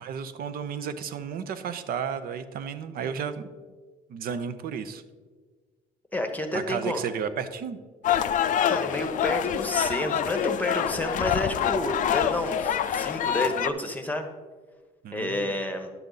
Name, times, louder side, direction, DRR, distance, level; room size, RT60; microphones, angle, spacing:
voice 1, 0.0-3.5 4.1-5.0 6.5-7.8 15.0-15.6, right 7 dB, 60° right, 11 dB, 0.7 m, -33 dB
voice 2, 6.1-7.0 8.7-14.3 15.1-15.9, left 1 dB, 10° left, 5 dB, 0.9 m, -30 dB
sound 1, 8.0-13.7, left 9 dB, 50° left, 0.4 m, -26 dB
10.5 x 6.9 x 3.9 m, 1.5 s
cardioid pair, 110°, 17 cm